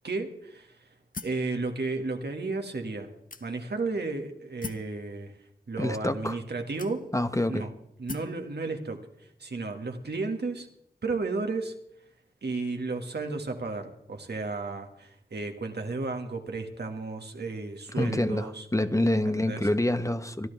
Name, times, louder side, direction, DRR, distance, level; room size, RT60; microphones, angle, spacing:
voice 1, 0.0-0.9 1.2-3.1 3.4-5.3 5.7-7.0 7.5-7.7 8.0-10.7 11.0-11.7 12.4-18.7 19.2-19.7, right 3 dB, 75° right, 2.0 m, -33 dB
sound 1, 1.1-1.5 2.3-2.4 3.3-3.8 4.6-4.9 5.9-6.0 6.8-7.3 8.1-8.4, left 4 dB, 55° left, 0.9 m, -41 dB
voice 2, 5.8-6.4 7.1-7.7 18.0-18.5 18.7-20.5, left 1 dB, 20° left, 1.0 m, -26 dB
25.5 x 11.5 x 3.5 m
cardioid pair, 45°, 17 cm